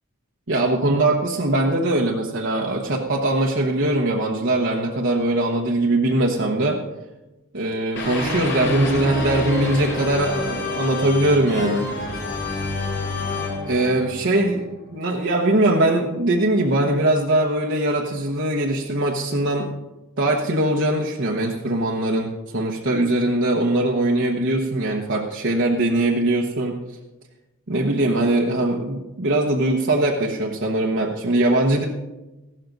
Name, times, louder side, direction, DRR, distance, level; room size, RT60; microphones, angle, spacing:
voice 1, 0.5-6.8 7.5-11.9 13.7-14.7 14.9-19.7 20.2-26.8 27.7-31.8, right 1 dB, 55° right, -2 dB, 1.1 m, -21 dB
sound 1, 8.0-14.9, left 2 dB, 50° left, 2.8 m, -28 dB
15.5 x 12.0 x 4.0 m, 1.0 s
head